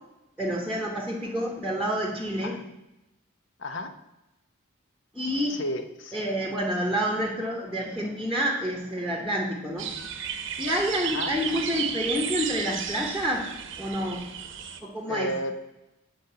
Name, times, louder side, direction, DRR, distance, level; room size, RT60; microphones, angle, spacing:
voice 1, 0.4-2.6 5.1-5.6 6.1-10.0 10.6-13.5 13.8-14.3 14.8-15.3, equal, ahead, 0 dB, 1.2 m, -28 dB
voice 2, 3.6-3.9 5.5-6.2 11.0-11.3 15.1-15.6, left 1 dB, 60° left, 8 dB, 1.0 m, -32 dB
sound 1, 9.8-14.8, right 7 dB, 60° right, 0.9 m, -33 dB
9.3 x 5.3 x 6.9 m, 0.93 s
head